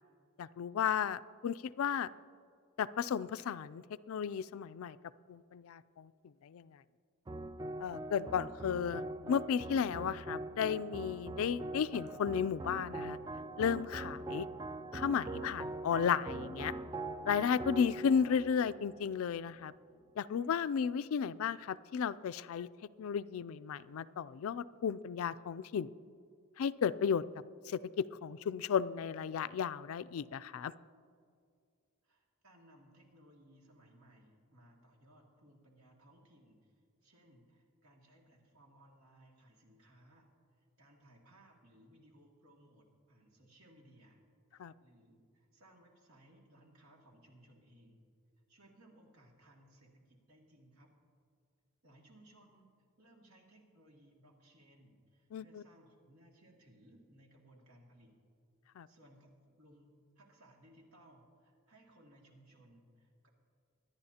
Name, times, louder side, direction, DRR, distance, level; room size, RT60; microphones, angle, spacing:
voice 1, 0.4-2.1 2.8-5.0 5.3-6.8 7.8-13.2 13.6-14.5 14.9-16.7 17.3-19.7 20.2-22.7 23.0-25.9 26.6-27.2 27.7-30.7 44.6-44.7 55.3-55.6 58.8-58.9, left 7 dB, 70° left, 16 dB, 0.3 m, -34 dB
piano mess about, 7.3-19.7, right 2 dB, 20° right, 0.3 m, -42 dB
voice 2, 32.0-40.3 40.8-44.2 44.5-48.0 48.5-50.9 51.8-52.7 53.0-58.1 58.9-63.3, right 1 dB, 85° right, -1 dB, 2.2 m, -63 dB
23.5 x 10.5 x 2.8 m, 2.3 s
head